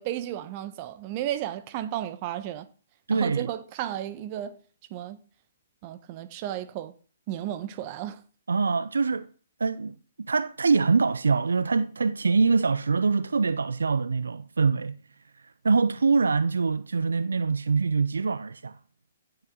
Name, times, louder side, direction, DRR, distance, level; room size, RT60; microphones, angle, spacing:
voice 1, 0.0-2.7 3.1-4.6 4.9-5.2 5.8-6.9 7.3-8.2, right 12 dB, 35° right, 1.2 m, -33 dB
voice 2, 3.1-3.5 8.5-9.3 9.6-9.9 10.3-15.0 15.6-18.8, right 4 dB, 80° right, 0.6 m, -24 dB
16.0 x 8.1 x 3.9 m
hypercardioid pair, 130°, 0 cm